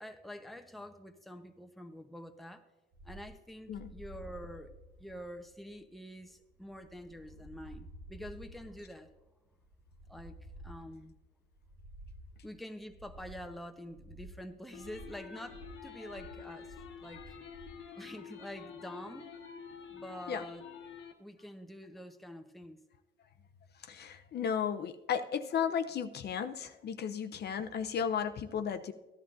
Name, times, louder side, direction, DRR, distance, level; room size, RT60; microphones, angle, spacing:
voice 1, 0.0-2.6 3.0-4.7 5.0-9.1 10.1-11.1 12.4-17.3 18.0-19.3 19.9-20.7 21.2-22.8, equal, ahead, 6 dB, 0.8 m, -47 dB
sound 1, 2.9-17.8, right 1 dB, 60° right, 1.9 m, -52 dB
sound 2, 14.7-21.1, left 7 dB, 75° left, 1.1 m, -48 dB
voice 2, 23.9-28.9, left 7 dB, 55° left, 9 dB, 0.6 m, -34 dB
15.0 x 11.0 x 2.5 m, 1.1 s
cardioid pair, 90°, 20 cm